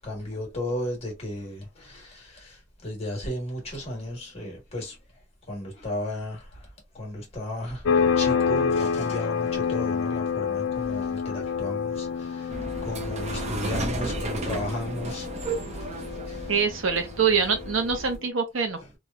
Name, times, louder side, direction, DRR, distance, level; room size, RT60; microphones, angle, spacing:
voice 1, 0.0-5.0 5.5-6.7 6.9-16.5, left 1 dB, 35° left, 1.3 m, -34 dB
sound 1, 7.9-18.2, left 6 dB, 85° left, 0.4 m, -28 dB
sound 2, 12.5-18.2, right 2 dB, 35° right, 0.5 m, -34 dB
voice 2, 16.5-19.0, right 6 dB, 90° right, 0.8 m, -25 dB
2.9 x 2.3 x 2.3 m
head